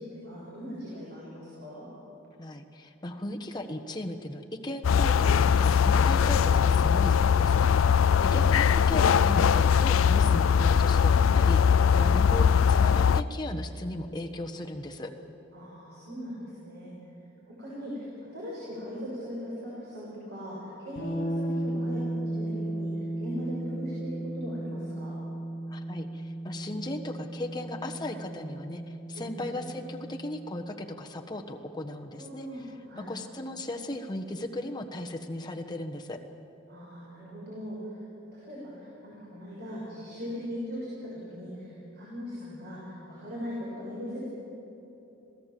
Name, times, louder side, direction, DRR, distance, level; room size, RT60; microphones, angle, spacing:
voice 1, 0.0-1.9 12.0-12.2 15.5-16.9 17.5-25.1 29.1-29.5 32.2-32.6 32.9-33.1 36.7-38.0 38.4-44.3, equal, 55° right, -6 dB, 6.5 m, -39 dB
voice 2, 2.4-15.1 25.7-32.5 33.1-36.2, left 1 dB, 20° left, 3 dB, 1.3 m, -37 dB
sound 1, 4.8-13.2, left 7 dB, 85° left, 0.4 m, -21 dB
sound 2, 21.0-30.7, right 1 dB, 60° left, 6.7 m, -35 dB
26.5 x 18.0 x 7.6 m, 3.0 s
head